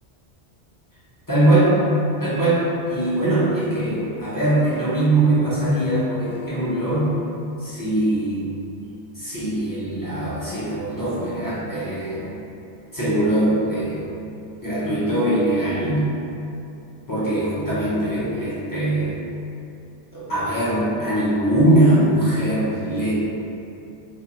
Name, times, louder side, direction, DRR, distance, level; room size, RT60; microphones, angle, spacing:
voice 1, 1.3-1.8 2.2-2.6 2.9-7.1 7.6-8.5 9.2-12.3 12.9-14.1 14.6-16.1 17.1-19.2 20.1-23.1, right 1 dB, 30° left, -10 dB, 0.3 m, -21 dB
2.6 x 2.2 x 2.8 m, 2.7 s
omnidirectional pair, 1.2 m